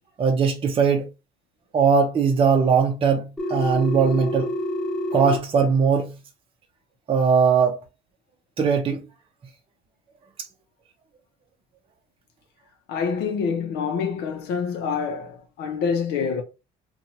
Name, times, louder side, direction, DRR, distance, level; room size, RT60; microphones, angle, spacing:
voice 1, 0.2-1.1 1.7-4.5 5.1-6.1 7.1-7.8 8.6-9.0, right 5 dB, 30° right, 0.6 m, -20 dB
Telephone, 3.4-5.4, left 1 dB, 5° left, 0.9 m, -27 dB
voice 2, 12.9-16.4, left 6 dB, 80° left, 0.6 m, -26 dB
2.8 x 2.3 x 2.7 m
cardioid pair, 110°, 17 cm